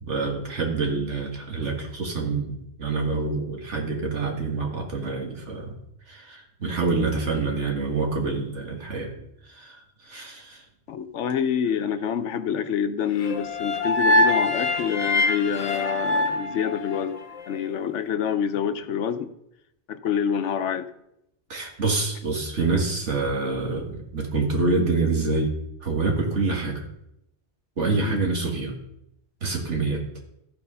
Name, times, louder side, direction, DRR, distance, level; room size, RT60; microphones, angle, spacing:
voice 1, 0.0-5.7 6.1-9.1 9.5-10.6 21.5-26.8 27.8-28.8 29.4-30.0, right 3 dB, 80° right, 1 dB, 2.1 m, -26 dB
voice 2, 10.9-17.2 17.5-19.3 19.9-20.9 28.0-28.2, left 8 dB, 80° left, 10 dB, 1.0 m, -27 dB
sound 1, 13.2-17.4, left 2 dB, 45° left, 0.6 m, -24 dB
14.0 x 4.8 x 5.5 m, 0.81 s
omnidirectional pair, 1.2 m